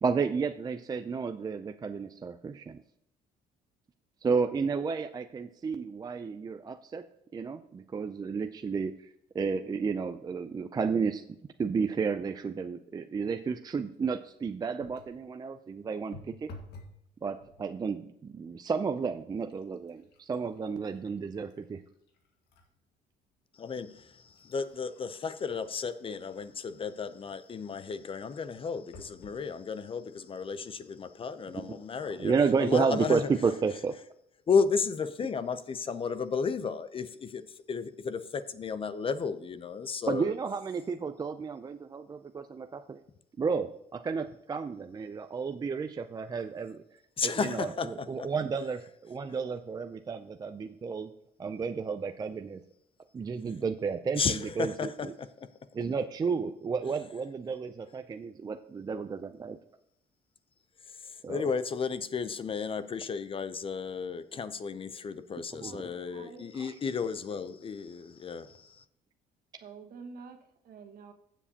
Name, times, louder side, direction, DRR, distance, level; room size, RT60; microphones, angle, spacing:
voice 1, 0.0-2.8 4.2-7.0 7.3-9.1 9.3-11.2 11.6-16.5 17.2-21.8 31.5-31.8 32.2-34.0 40.1-43.0 43.4-46.8 47.2-51.1 51.4-52.6 53.1-55.1 55.7-59.6 61.2-61.4 65.6-65.8 66.6-66.7, right 5 dB, 25° right, 8 dB, 0.4 m, -32 dB
sound 1, 14.8-15.2 16.1-17.0 17.4-17.9 18.6-18.8 19.1-22.7 23.2-23.3 24.0-26.7 28.9-29.4 30.1-30.2 30.5-30.6, left 2 dB, 75° left, 1.8 m, -53 dB
voice 2, 23.6-32.3 32.6-33.2 34.5-40.3 47.2-48.3 54.1-55.5 60.9-68.8, left 5 dB, 30° left, 13 dB, 0.6 m, -33 dB
voice 3, 65.6-66.5 69.6-71.1, right 5 dB, 65° right, 4 dB, 1.5 m, -48 dB
15.5 x 7.3 x 2.8 m, 0.77 s
cardioid pair, 110°, 17 cm